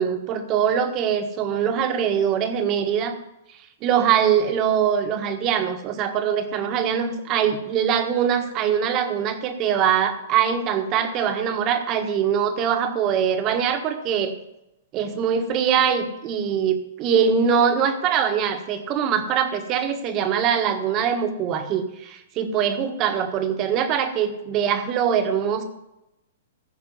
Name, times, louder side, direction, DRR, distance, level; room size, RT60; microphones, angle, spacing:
voice 1, 0.0-3.2 3.8-14.3 14.9-25.6, right 8 dB, 35° right, 7 dB, 1.4 m, -22 dB
15.0 x 6.3 x 5.5 m, 0.89 s
hypercardioid pair, 135°, 0 cm